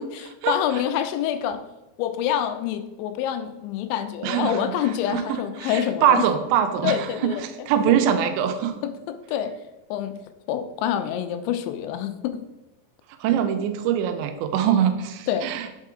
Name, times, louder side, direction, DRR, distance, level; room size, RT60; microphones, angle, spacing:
voice 1, 0.0-1.7 2.0-6.3 6.8-8.0 8.8-9.6 9.9-10.2 10.5-12.5 15.3-15.5, left 10 dB, 85° left, 10 dB, 2.9 m, -27 dB
voice 2, 4.2-4.6 5.1-5.2 5.6-7.0 7.2-7.3 7.7-8.8 13.2-15.7, right 9 dB, 85° right, 8 dB, 2.8 m, -22 dB
5.7 x 5.3 x 4.9 m, 0.99 s
omnidirectional pair, 5.2 m